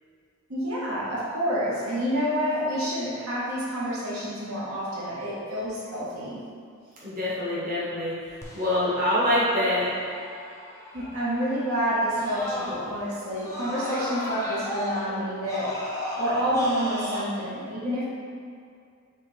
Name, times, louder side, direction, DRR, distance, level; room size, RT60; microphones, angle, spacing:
voice 1, 0.5-6.4 10.9-15.8 16.2-18.0, equal, 75° right, -8 dB, 1.2 m, -28 dB
voice 2, 7.0-8.1 8.5-9.9, left 1 dB, 40° right, -9 dB, 1.1 m, -25 dB
Screaming, 8.4-13.0 13.4-17.2, left 1 dB, 15° left, 0.5 m, -36 dB
6.7 x 2.4 x 3.3 m, 2.3 s
head